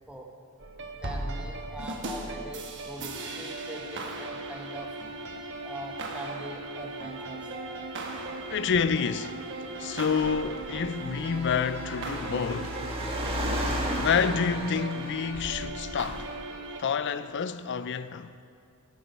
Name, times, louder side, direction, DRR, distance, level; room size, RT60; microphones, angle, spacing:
sound 1, 0.6-16.8, right 2 dB, 55° right, 1.1 m, -38 dB
voice 1, 0.9-4.9 5.6-7.9, right 1 dB, 5° right, 1.1 m, -42 dB
Car, 8.4-16.3, equal, 25° right, 1.4 m, -35 dB
voice 2, 8.5-9.4 9.8-12.8 13.9-16.3 16.8-18.3, left 6 dB, 55° left, 0.4 m, -28 dB
13.0 x 8.4 x 5.4 m
head